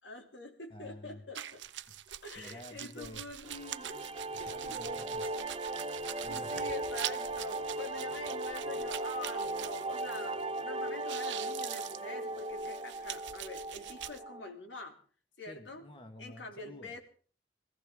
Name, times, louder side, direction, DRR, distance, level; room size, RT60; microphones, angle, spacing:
voice 1, 0.0-1.6 2.2-4.8 6.2-15.0 15.4-15.8 16.2-17.0, left 2 dB, 85° left, 3 dB, 3.0 m, -46 dB
voice 2, 0.7-1.2 1.9-3.3 4.3-5.3 5.9-6.7 15.5-16.9, left 1 dB, 30° left, 6 dB, 1.6 m, -50 dB
sound 1, 1.4-10.6 10.9-14.2, right 12 dB, 85° right, 0.7 m, -44 dB
sound 2, 3.4-14.5, right 2 dB, 35° right, 0.9 m, -38 dB
23.0 x 15.5 x 3.7 m, 0.40 s
head